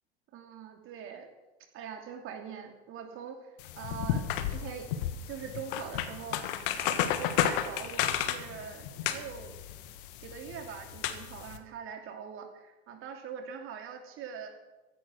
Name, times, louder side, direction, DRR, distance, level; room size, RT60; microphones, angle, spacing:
voice 1, 0.3-1.3 1.7-4.9 5.3-9.5 10.2-14.5, right 7 dB, 40° right, 5 dB, 2.8 m, -43 dB
sound 1, 3.6-11.6, left 10 dB, 55° left, 1.4 m, -33 dB
15.0 x 11.0 x 6.3 m, 1.1 s
figure-of-eight pair, 85°, 31 cm